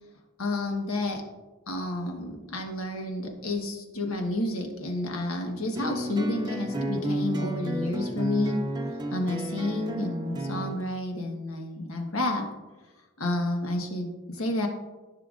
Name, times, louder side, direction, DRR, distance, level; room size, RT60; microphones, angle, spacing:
voice 1, 0.4-1.2 1.7-8.6 9.1-12.4 13.2-14.7, left 1 dB, 85° left, 2 dB, 1.4 m, -30 dB
sound 1, 5.8-10.8, right 1 dB, 20° right, 0.6 m, -32 dB
14.0 x 5.8 x 2.5 m, 1.2 s
head